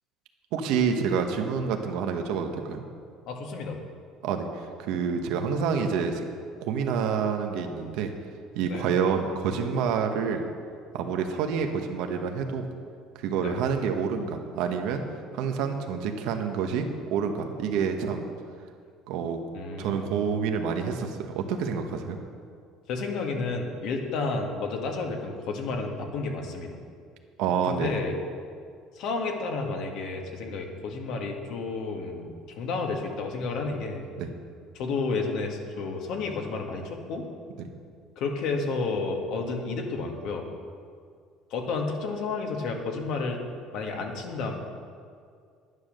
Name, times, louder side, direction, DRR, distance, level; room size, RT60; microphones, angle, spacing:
voice 1, 0.5-2.8 4.2-4.5 4.8-6.2 6.6-8.1 8.5-10.4 10.9-12.6 13.2-15.0 15.3-18.3 19.1-19.4 19.8-22.2 27.4-28.0 34.2-34.3 37.6-37.7, right 6 dB, 75° right, 4 dB, 1.2 m, -28 dB
voice 2, 3.3-3.8 8.7-8.8 11.3-11.4 13.4-13.5 19.5-20.1 22.9-26.8 27.7-28.2 29.0-32.3 32.6-34.0 34.7-37.3 38.2-40.5 41.5-43.4 43.7-44.5, left 4 dB, 60° left, 2 dB, 1.8 m, -31 dB
11.0 x 9.7 x 6.6 m, 2.2 s
cardioid pair, 150°, 0 cm